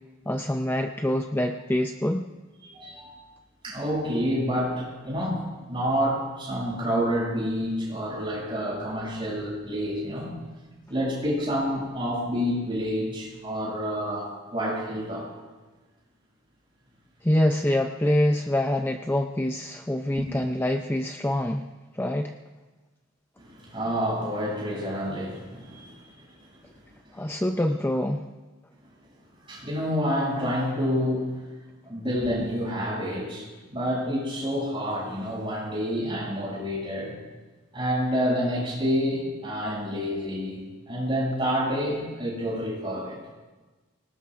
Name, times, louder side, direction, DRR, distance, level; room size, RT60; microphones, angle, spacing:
voice 1, 0.3-2.3 17.2-21.7 21.9-22.3 27.1-28.2, left 1 dB, 10° left, 4 dB, 0.5 m, -25 dB
voice 2, 2.6-3.2 3.6-5.4 5.7-10.3 10.9-15.3 20.2-20.3 23.4-26.3 29.5-31.4 31.8-37.1 37.7-40.6 40.9-43.2, equal, 25° right, -5 dB, 7.1 m, -28 dB
26.5 x 19.0 x 2.5 m, 1.3 s
head